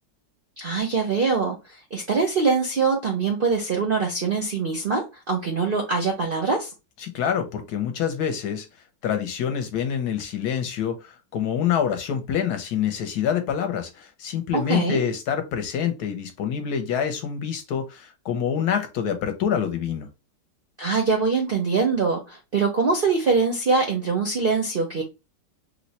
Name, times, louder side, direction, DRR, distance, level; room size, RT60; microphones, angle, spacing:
voice 1, 0.6-1.6 1.9-6.7 14.5-15.0 20.8-25.0, right 4 dB, 60° right, 0.5 m, -23 dB
voice 2, 7.0-8.7 9.0-20.1, left 8 dB, 70° left, 1.1 m, -26 dB
3.0 x 2.1 x 4.0 m
omnidirectional pair, 1.8 m